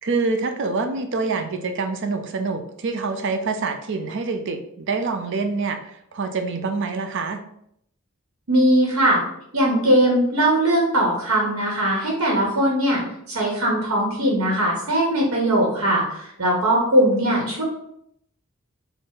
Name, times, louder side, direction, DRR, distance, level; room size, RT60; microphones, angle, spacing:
voice 1, 0.0-7.4, right 4 dB, 55° right, 7 dB, 0.4 m, -26 dB
voice 2, 8.5-9.2 9.5-17.6, right 1 dB, 80° right, -2 dB, 0.9 m, -20 dB
4.2 x 2.0 x 3.7 m, 0.72 s
head